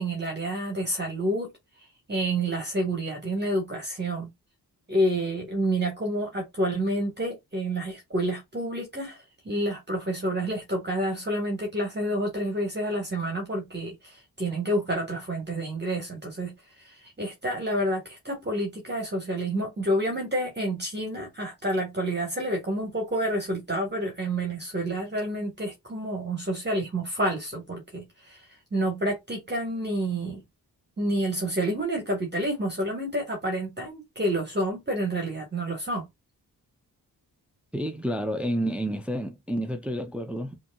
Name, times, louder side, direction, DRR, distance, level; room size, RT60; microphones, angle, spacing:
voice 1, 0.0-1.5 2.1-4.3 4.9-30.4 31.0-36.1, right 1 dB, 25° right, 1.4 m, -29 dB
voice 2, 37.7-40.6, equal, 5° right, 0.5 m, -30 dB
5.2 x 2.9 x 2.3 m
wide cardioid pair, 130°, 38 cm